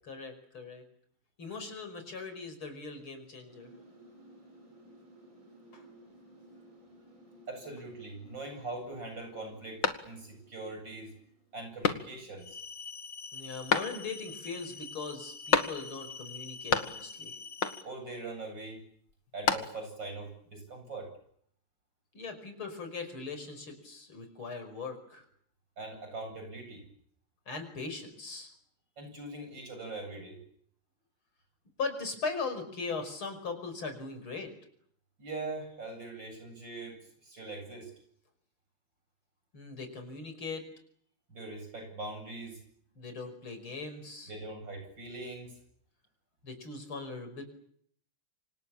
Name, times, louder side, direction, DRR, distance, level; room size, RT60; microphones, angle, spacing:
voice 1, 0.1-0.8 1.4-3.7 5.7-5.8 13.3-17.4 22.1-25.3 27.5-28.5 31.8-34.5 39.5-40.6 43.0-44.3 46.4-47.4, left 4 dB, 90° left, 8 dB, 6.2 m, -39 dB
sound 1, 3.5-12.3, right 1 dB, 40° right, 6.2 m, -57 dB
voice 2, 7.5-11.1 11.5-12.6 17.8-18.8 19.3-21.1 25.8-26.9 29.0-30.4 35.2-37.9 41.3-42.6 44.3-45.6, right 2 dB, 60° right, 5 dB, 8.8 m, -42 dB
sound 2, 9.8-10.5 10.9-11.0 11.8-12.4 13.7-14.3 15.5-16.1 16.4-17.2 17.6-18.1 19.1-20.0, left 5 dB, 65° left, 2.5 m, -31 dB
sound 3, 12.4-17.8, left 5 dB, 35° left, 1.6 m, -45 dB
28.5 x 26.0 x 7.3 m, 0.67 s
omnidirectional pair, 2.2 m